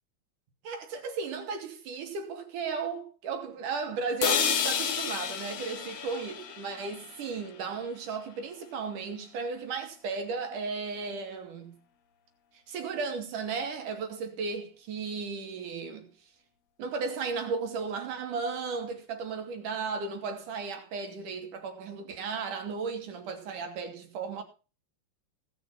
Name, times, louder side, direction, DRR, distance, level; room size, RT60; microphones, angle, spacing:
voice 1, 0.6-11.8 12.7-16.1 16.8-24.4, right 5 dB, 75° right, 3.8 m, -35 dB
sound 1, 4.2-8.2, left 8 dB, 60° left, 2.3 m, -32 dB
18.0 x 6.1 x 5.9 m
omnidirectional pair, 3.7 m